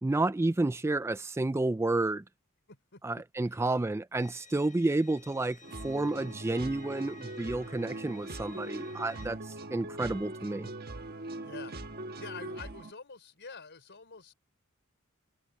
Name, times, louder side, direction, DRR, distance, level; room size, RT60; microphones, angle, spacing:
voice 1, 0.0-2.2 3.0-5.6 5.8-10.7, right 2 dB, 10° right, 0.3 m, -30 dB
voice 2, 2.7-3.8 11.4-11.8 12.1-14.3, left 5 dB, 55° left, 4.8 m, -48 dB
Bowed string instrument, 4.2-9.3, left 5 dB, 40° left, 3.7 m, -55 dB
sound 1, 5.6-12.9, right 2 dB, 45° right, 1.3 m, -41 dB
head